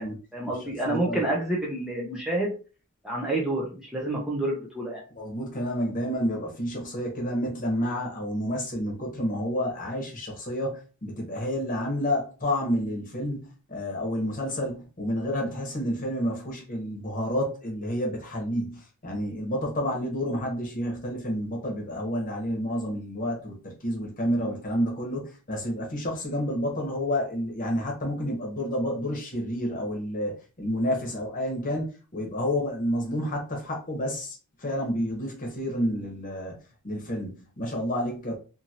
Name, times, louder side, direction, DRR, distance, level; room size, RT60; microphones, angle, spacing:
voice 1, 0.0-2.5 3.0-5.0, right 1 dB, 5° right, 0.5 m, -29 dB
voice 2, 0.6-1.3 5.1-36.6 36.8-38.4, equal, 35° left, 1.0 m, -30 dB
2.7 x 2.6 x 2.8 m
head